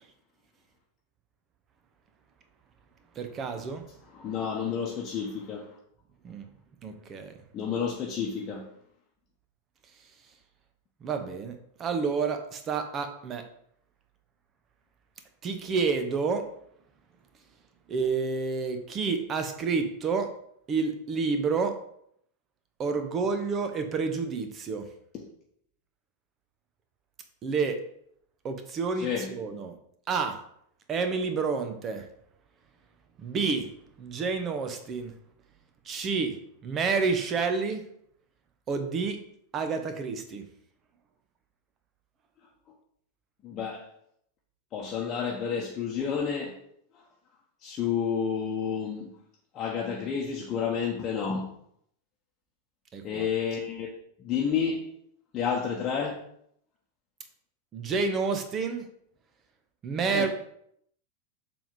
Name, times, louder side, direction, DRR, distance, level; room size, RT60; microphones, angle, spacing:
voice 1, 3.2-3.9 6.2-6.5 6.8-7.3 11.0-13.4 15.4-16.5 17.9-20.3 20.7-21.7 22.8-24.9 27.4-27.8 28.4-29.7 30.1-30.4 30.9-32.1 33.2-33.7 34.0-35.1 35.8-36.4 36.6-37.8 38.7-39.2 39.5-40.4 52.9-53.3 57.7-58.9 59.8-60.3, right 5 dB, 25° right, 7 dB, 1.0 m, -29 dB
voice 2, 4.1-5.7 7.5-8.6 25.1-25.2 29.0-29.3 43.4-43.8 44.7-46.5 47.6-49.1 49.5-51.5 53.0-53.9 54.2-54.8 55.3-56.2 60.1-60.3, left 7 dB, 30° left, -2 dB, 1.1 m, -30 dB
7.4 x 3.6 x 5.2 m, 0.70 s
figure-of-eight pair, 90°, 0 cm